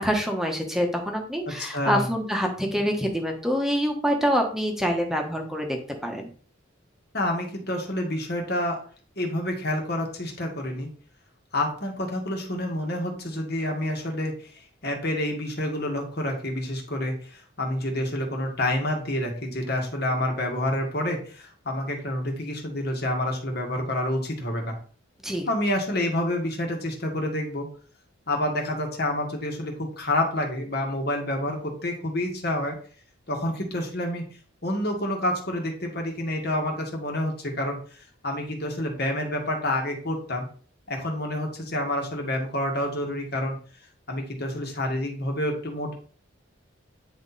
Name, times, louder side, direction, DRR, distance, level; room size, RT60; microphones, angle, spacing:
voice 1, 0.0-5.8 6.0-6.3 25.2-25.5, equal, ahead, 3 dB, 1.3 m, -26 dB
voice 2, 1.6-2.1 7.1-8.8 9.2-10.9 11.5-24.8 25.5-27.7 28.3-32.8 33.3-34.2 34.6-37.8 38.2-40.5 40.9-43.6 44.1-45.9, left 1 dB, 50° left, 2 dB, 1.8 m, -28 dB
9.5 x 4.4 x 4.2 m, 0.43 s
head